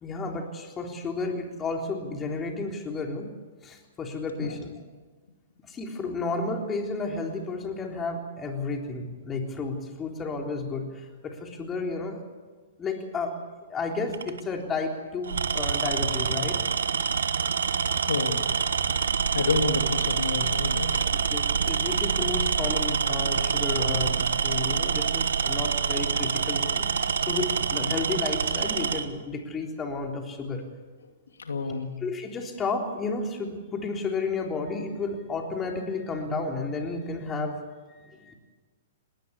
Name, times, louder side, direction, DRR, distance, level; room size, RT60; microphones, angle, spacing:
voice 1, 0.0-3.3 3.6-4.7 5.6-12.2 12.8-13.3 13.7-16.6 21.3-30.6 31.7-37.6 37.9-38.3, left 3 dB, 20° left, 2 dB, 3.6 m, -32 dB
Tools, 14.1-14.4 15.2-29.1, right 6 dB, 80° right, 1.3 m, -26 dB
voice 2, 18.1-18.4 19.3-21.0 31.4-32.0, left 3 dB, 85° left, 5 dB, 2.6 m, -29 dB
20.5 x 18.5 x 8.3 m, 1.4 s
hypercardioid pair, 125°, 0 cm